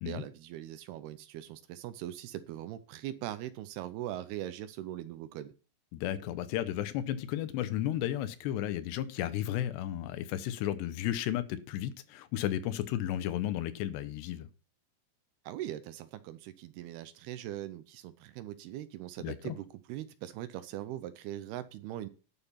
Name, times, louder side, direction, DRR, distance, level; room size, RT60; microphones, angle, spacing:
voice 1, 0.0-5.5 15.5-22.1, right 13 dB, 80° right, 12 dB, 2.6 m, -41 dB
voice 2, 5.9-14.5 19.2-19.6, left 12 dB, 90° left, 12 dB, 3.1 m, -33 dB
11.0 x 7.2 x 5.6 m, 0.35 s
omnidirectional pair, 4.8 m